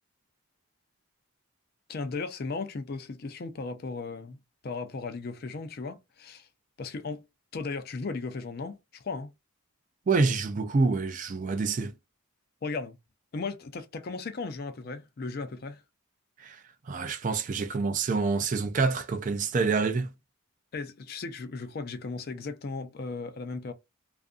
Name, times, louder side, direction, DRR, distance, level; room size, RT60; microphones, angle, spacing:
voice 1, 1.9-4.4 4.6-6.5 6.8-7.2 7.5-9.3 12.6-13.0 13.3-15.8 20.7-23.7, left 4 dB, 45° left, 0.4 m, -36 dB
voice 2, 10.1-11.9 16.4-16.6 16.9-20.1, right 4 dB, 35° right, 0.3 m, -27 dB
2.5 x 2.4 x 2.3 m
head